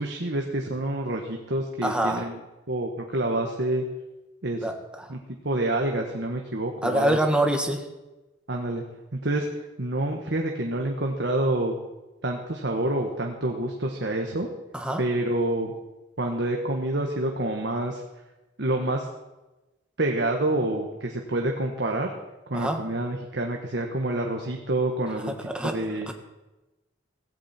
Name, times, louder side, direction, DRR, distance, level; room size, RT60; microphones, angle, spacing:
voice 1, 0.0-2.4 2.7-3.8 4.4-4.6 5.1-5.2 5.4-7.2 8.5-8.8 9.1-11.7 12.2-14.5 15.0-15.7 16.2-18.0 18.6-19.1 20.0-22.1 22.5-26.1, right 1 dB, 65° right, 2 dB, 1.6 m, -27 dB
voice 2, 1.8-2.2 4.6-4.7 5.0-5.1 6.8-7.8 14.7-15.0 22.5-22.8 25.5-25.7 26.1-26.2, right 1 dB, 5° right, 3 dB, 1.7 m, -25 dB
17.0 x 16.5 x 4.5 m, 1.1 s
head